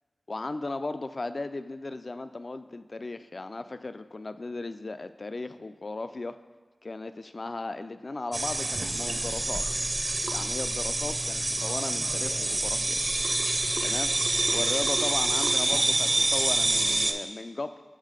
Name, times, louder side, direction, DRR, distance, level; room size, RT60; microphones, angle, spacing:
voice 1, 0.3-6.4 6.8-9.6 10.3-13.0 13.8-14.1 14.5-17.8, left 2 dB, 55° left, 11 dB, 0.3 m, -36 dB
sound 1, 8.3-17.1, right 2 dB, 45° right, 0.5 m, -27 dB
7.4 x 3.2 x 5.0 m, 1.4 s
wide cardioid pair, 50°, 0 cm